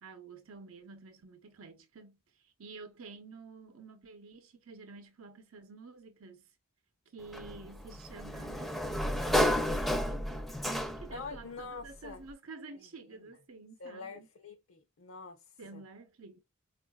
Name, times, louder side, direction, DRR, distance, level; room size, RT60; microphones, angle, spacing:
voice 1, 0.0-6.5 7.1-10.2 10.6-14.3 15.6-16.4, right 3 dB, 80° right, 0.7 m, -50 dB
Sliding door, 7.3-11.3, equal, ahead, 0.4 m, -31 dB
voice 2, 11.1-12.2 12.7-12.9 13.1-13.2 13.8-15.4 15.7-15.8, left 4 dB, 65° left, 0.6 m, -45 dB
4.5 x 2.4 x 2.2 m
head